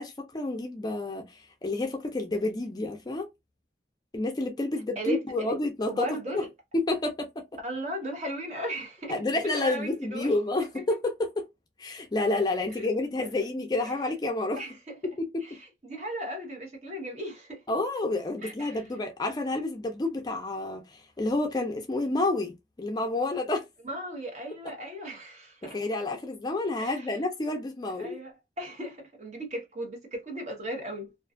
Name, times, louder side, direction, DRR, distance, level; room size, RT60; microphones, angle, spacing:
voice 1, 0.0-3.3 4.1-6.1 6.3-6.4 6.7-7.4 9.1-11.5 11.8-14.6 15.0-15.4 17.7-23.7 25.6-28.2, left 2 dB, 20° left, 0.4 m, -29 dB
voice 2, 5.0-5.6 5.9-6.5 7.6-10.3 10.7-10.9 12.8-12.9 13.2-13.3 13.8-14.0 14.6-15.0 15.4-17.6 18.4-18.8 23.8-25.8 26.8-27.2 27.9-31.1, right 1 dB, 40° right, 0.9 m, -37 dB
2.4 x 2.3 x 2.4 m
head